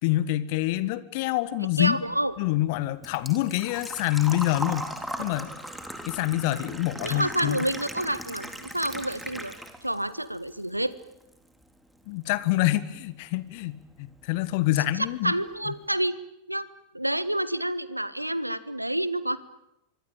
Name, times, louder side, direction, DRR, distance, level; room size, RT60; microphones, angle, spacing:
voice 1, 0.0-2.0 2.4-4.9 5.2-5.5 6.1-7.6 12.1-15.3 15.7-15.8, left 16 dB, 50° left, 16 dB, 1.5 m, -26 dB
voice 2, 1.8-2.3 7.0-9.5 9.8-10.9 15.0-16.2 16.5-16.7 16.9-19.4, right 1 dB, 85° right, 16 dB, 1.4 m, -28 dB
Engine / Trickle dribble / Fill (with liquid), 2.1-10.0 10.3-11.3 11.6-11.7 13.6-13.7 13.9-14.2 14.6-14.7 15.0-15.1, right 1 dB, ahead, 3.6 m, -38 dB
25.5 x 24.0 x 8.9 m, 0.88 s
figure-of-eight pair, 90°, 0 cm